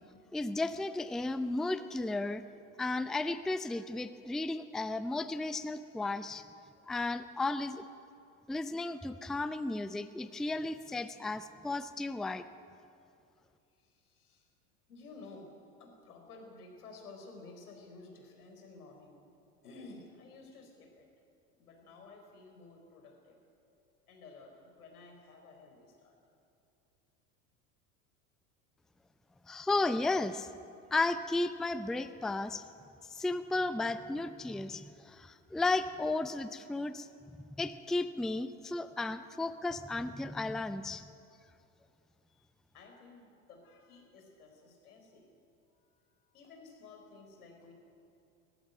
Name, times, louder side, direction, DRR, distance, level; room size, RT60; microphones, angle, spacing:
voice 1, 0.3-2.4 2.8-6.4 6.9-7.8 8.5-12.5 29.5-30.5 30.9-32.6 33.1-41.1, left 2 dB, ahead, 12 dB, 0.5 m, -34 dB
voice 2, 13.7-14.5 14.9-15.5 15.8-19.2 19.6-21.1 21.6-23.4 24.1-26.2 39.2-39.3 42.3-45.3 45.7-47.7, left 3 dB, 75° left, 3 dB, 4.3 m, -53 dB
19.0 x 14.5 x 9.8 m, 2.5 s
hypercardioid pair, 80°, 45 cm